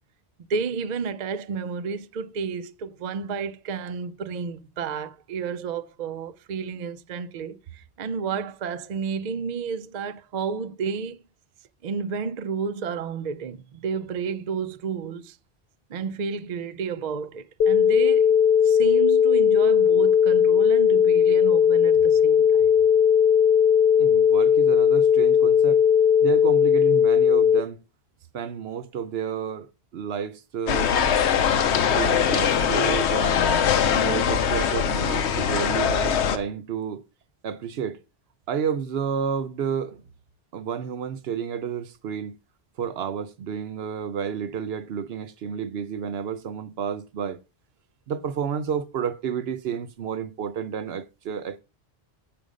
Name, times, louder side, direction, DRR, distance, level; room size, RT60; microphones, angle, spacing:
voice 1, 0.5-11.2 11.8-15.4 15.9-18.4 18.6-22.7, right 5 dB, 55° right, 0.5 m, -31 dB
sound 1, 17.6-27.6, left 8 dB, 70° left, 0.7 m, -18 dB
voice 2, 24.0-25.8 26.2-27.8 28.3-29.7 29.9-30.9 31.7-33.4 33.9-37.0 37.4-38.0 38.5-40.0 40.5-42.3 42.8-47.4 48.1-51.6, right 7 dB, 70° right, 0.9 m, -30 dB
sound 2, 30.7-36.4, left 7 dB, 85° left, 1.0 m, -22 dB
7.6 x 5.2 x 4.9 m
omnidirectional pair, 1.1 m